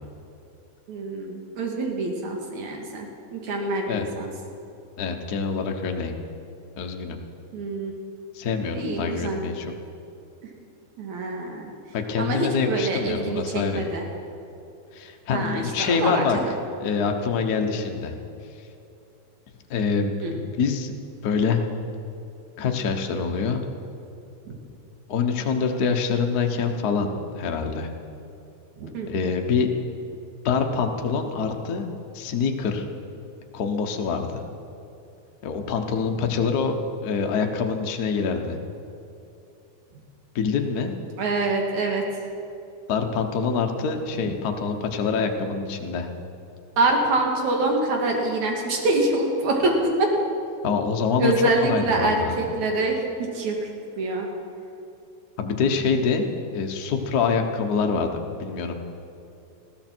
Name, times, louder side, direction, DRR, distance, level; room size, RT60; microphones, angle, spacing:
voice 1, 0.9-4.3 7.5-7.9 8.7-9.4 11.0-11.7 12.2-14.0 15.3-16.5 20.2-20.3 24.5-24.6 28.8-29.1 41.2-42.0 46.8-50.2 51.2-53.6 54.0-54.3, right 2 dB, 75° right, 1 dB, 3.0 m, -25 dB
voice 2, 5.0-6.1 6.8-7.2 8.3-9.7 11.9-13.9 14.9-16.4 16.8-18.1 19.7-20.9 21.2-21.6 22.6-23.6 25.1-27.1 27.4-27.9 29.1-29.7 30.4-31.9 32.1-32.9 33.5-34.4 35.4-36.8 37.0-38.6 40.3-40.9 42.9-46.1 50.6-51.3 51.6-52.4 55.4-58.7, left 5 dB, 85° left, 3 dB, 0.8 m, -25 dB
20.0 x 15.5 x 4.5 m, 2.7 s
omnidirectional pair, 3.4 m